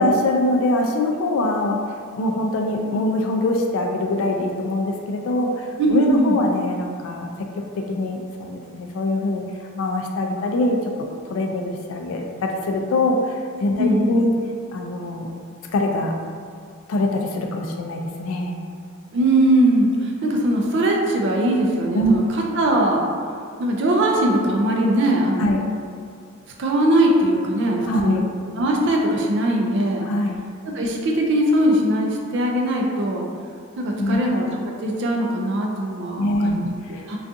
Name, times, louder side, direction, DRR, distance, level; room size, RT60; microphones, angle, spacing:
voice 1, 0.0-7.3 7.6-9.4 9.8-10.8 11.3-14.3 14.7-15.3 15.7-16.2 16.9-18.6 21.9-22.2 25.4-25.7 27.9-28.3 30.1-30.4 34.0-34.2 36.2-36.6 36.9-37.1, left 1 dB, 65° left, 2 dB, 0.3 m, -23 dB
voice 2, 5.8-6.4 13.8-14.2 19.1-23.1 23.6-25.5 26.6-28.3 28.6-30.1 30.6-33.3 33.8-37.2, right 1 dB, 55° right, 0 dB, 0.4 m, -20 dB
2.4 x 2.3 x 2.6 m, 2.1 s
head